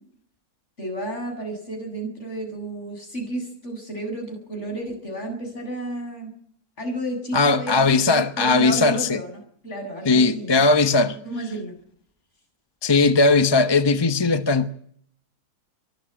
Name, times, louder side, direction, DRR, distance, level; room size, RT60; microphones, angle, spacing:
voice 1, 0.8-6.3 6.8-10.6 11.2-11.8, right 1 dB, 45° left, 8.0 m, -32 dB
voice 2, 7.3-9.2 10.1-11.2 12.8-14.7, left 3 dB, 20° left, 0.8 m, -18 dB
23.5 x 13.5 x 9.0 m
omnidirectional pair, 1.7 m